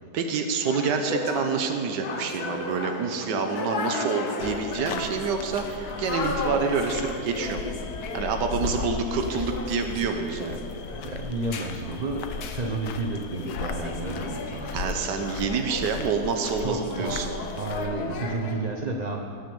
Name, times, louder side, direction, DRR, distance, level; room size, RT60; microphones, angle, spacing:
voice 1, 0.1-7.7 8.1-10.7 14.7-17.4, right 5 dB, 90° right, 5 dB, 1.5 m, -27 dB
sound 1, 0.6-18.5, left 3 dB, 65° left, 1.5 m, -35 dB
sound 2, 4.4-17.9, left 5 dB, 85° left, 1.4 m, -37 dB
voice 2, 8.5-8.8 10.9-12.2 12.5-14.8 16.6-17.1 17.5-19.3, right 2 dB, 40° right, 2 dB, 0.6 m, -31 dB
19.0 x 6.5 x 7.0 m, 2.6 s
omnidirectional pair, 1.8 m